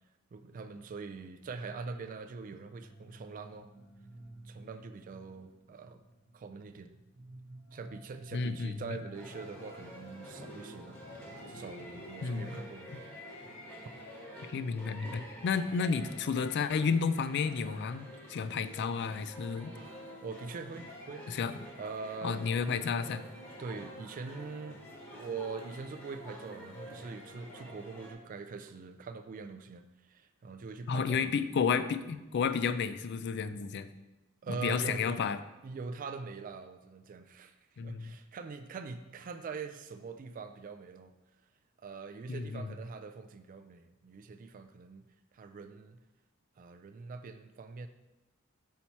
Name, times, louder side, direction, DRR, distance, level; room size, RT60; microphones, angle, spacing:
voice 1, 0.3-3.7 4.4-6.0 6.3-6.9 7.7-11.0 11.5-12.9 20.2-21.3 21.7-22.8 23.6-24.8 25.1-31.3 34.4-35.2 35.6-37.5 37.8-41.1 41.8-45.0 45.3-46.0 46.6-47.9, right 4 dB, 40° right, 7 dB, 0.3 m, -43 dB
sound 1, 2.6-14.4, right 1 dB, 70° right, 0.9 m, -56 dB
voice 2, 8.3-9.0 12.2-12.6 14.5-19.7 21.3-21.7 22.2-23.2 30.9-33.9 34.5-35.4 37.8-38.2 42.3-42.7, left 5 dB, 55° left, 12 dB, 0.3 m, -32 dB
sound 2, 9.1-28.1, equal, 10° left, 1.1 m, -48 dB
5.7 x 4.4 x 4.2 m, 1.0 s
head